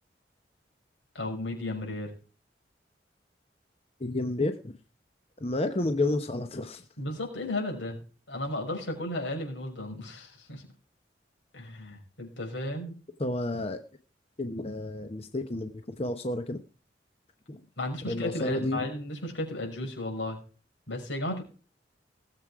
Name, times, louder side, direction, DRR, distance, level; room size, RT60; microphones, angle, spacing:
voice 1, 1.1-2.1 7.0-10.7 11.5-12.9 17.8-20.4 20.9-21.4, left 1 dB, 90° left, 2 dB, 5.8 m, -34 dB
voice 2, 4.0-4.7 5.4-6.9 13.2-13.8 14.4-16.6 17.5-17.6 18.1-18.8, left 2 dB, 35° left, 7 dB, 0.9 m, -31 dB
19.0 x 7.7 x 4.9 m, 0.36 s
head